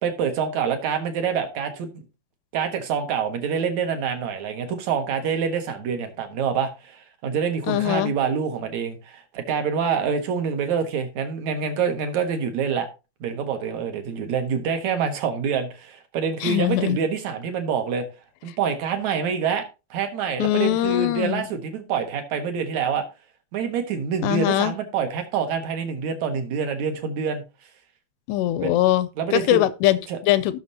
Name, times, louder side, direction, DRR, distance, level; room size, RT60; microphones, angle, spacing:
voice 1, 0.0-2.0 2.5-12.9 13.2-18.0 18.4-19.7 19.9-23.0 23.5-27.4 28.5-28.8 29.2-29.6 30.1-30.2, right 6 dB, 60° right, 2.0 m, -26 dB
voice 2, 7.7-8.1 16.4-17.0 20.4-21.5 24.2-24.7 28.3-30.0 30.2-30.6, left 14 dB, 80° left, 2.5 m, -22 dB
18.5 x 6.3 x 2.8 m
omnidirectional pair, 5.1 m